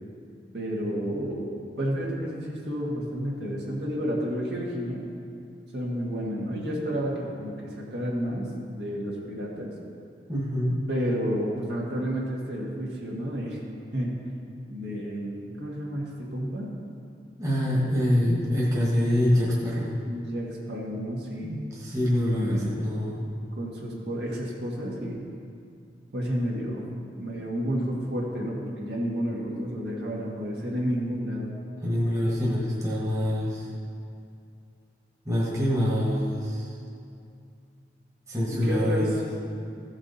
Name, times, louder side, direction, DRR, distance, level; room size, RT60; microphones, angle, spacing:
voice 1, 0.5-5.0 5.7-9.7 10.9-13.6 13.9-14.1 14.7-16.7 20.1-21.6 22.3-22.7 23.5-25.2 26.1-26.8 27.2-31.6 38.5-39.1, equal, 75° right, -3 dB, 1.8 m, -31 dB
voice 2, 10.3-10.8 17.4-20.0 21.4-23.2 31.8-33.7 35.2-36.7 38.3-39.2, left 1 dB, 20° right, -5 dB, 1.4 m, -25 dB
15.0 x 6.0 x 4.1 m, 2.4 s
head